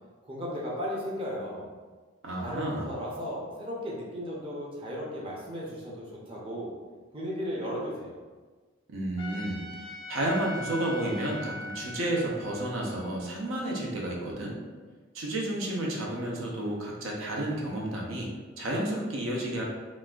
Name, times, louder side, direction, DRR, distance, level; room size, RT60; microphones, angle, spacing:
voice 1, 0.2-1.7 2.4-6.8 7.1-8.2, equal, 25° right, -5 dB, 0.6 m, -35 dB
voice 2, 2.2-2.9 8.9-14.6 15.1-18.3 18.6-19.6, right 1 dB, 85° right, -2 dB, 0.6 m, -31 dB
Trumpet, 9.2-14.4, left 1 dB, 25° left, 0.4 m, -42 dB
3.9 x 2.4 x 2.3 m, 1.4 s
head